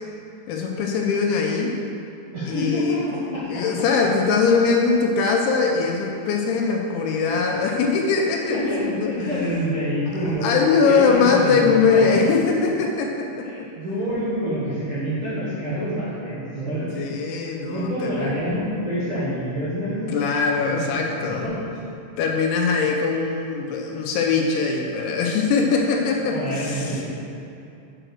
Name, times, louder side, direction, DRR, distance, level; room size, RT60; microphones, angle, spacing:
voice 1, 0.5-1.7 2.5-3.1 3.5-9.6 10.4-13.7 17.0-18.3 20.1-21.4 22.2-27.1, left 5 dB, 85° left, 1 dB, 2.9 m, -21 dB
voice 2, 2.3-3.6 8.4-12.2 13.4-16.9 17.7-20.2 20.5-21.6 26.1-27.1, equal, 80° right, -11 dB, 1.1 m, -27 dB
7.8 x 5.0 x 6.4 m, 2.6 s
omnidirectional pair, 5.6 m